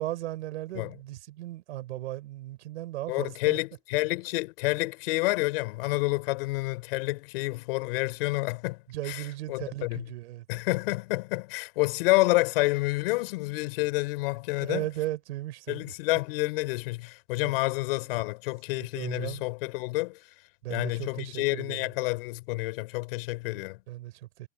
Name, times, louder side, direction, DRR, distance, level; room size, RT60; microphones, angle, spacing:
voice 1, 0.0-3.6 8.9-10.4 14.6-15.9 17.4-17.5 18.8-19.4 20.6-21.9 23.9-24.5, right 16 dB, 55° right, 6.7 m, -36 dB
voice 2, 3.1-8.8 9.1-9.2 9.5-10.0 10.5-14.9 15.7-20.2 20.7-23.8, left 23 dB, 45° left, 4.8 m, -29 dB
supercardioid pair, 165°, 40 cm